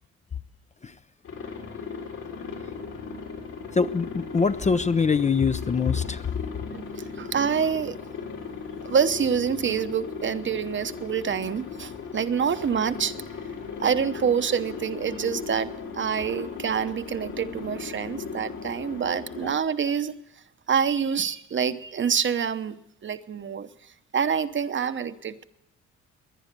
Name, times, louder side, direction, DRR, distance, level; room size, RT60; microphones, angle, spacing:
Aircraft, 1.2-19.5, left 5 dB, 70° left, 4.1 m, -37 dB
voice 1, 3.7-6.2, left 5 dB, 25° left, 11 dB, 0.5 m, -23 dB
voice 2, 6.7-8.0 8.8-13.1 13.8-20.2 20.7-22.8 23.0-25.4, right 7 dB, 40° right, 11 dB, 0.9 m, -26 dB
20.5 x 10.5 x 6.7 m, 0.81 s
cardioid pair, 90°, 30 cm